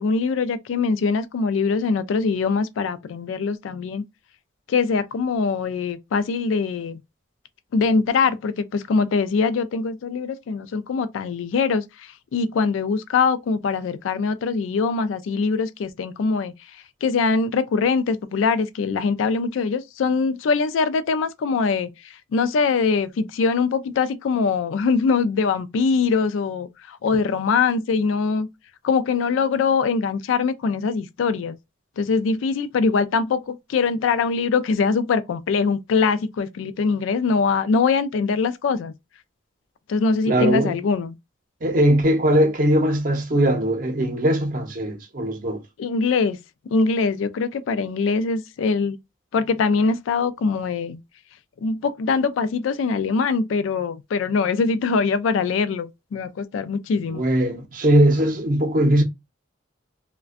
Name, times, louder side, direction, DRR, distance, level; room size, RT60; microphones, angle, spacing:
voice 1, 0.0-4.0 4.7-7.0 7.7-16.5 17.0-28.5 28.8-31.6 32.0-38.9 39.9-41.1 45.8-46.4 46.7-49.0 49.3-51.0 51.6-57.2, left 4 dB, 85° left, 0.3 m, -22 dB
voice 2, 40.3-40.7 41.6-45.6 57.1-59.0, right 1 dB, 45° right, 0.6 m, -20 dB
2.4 x 2.2 x 2.4 m
head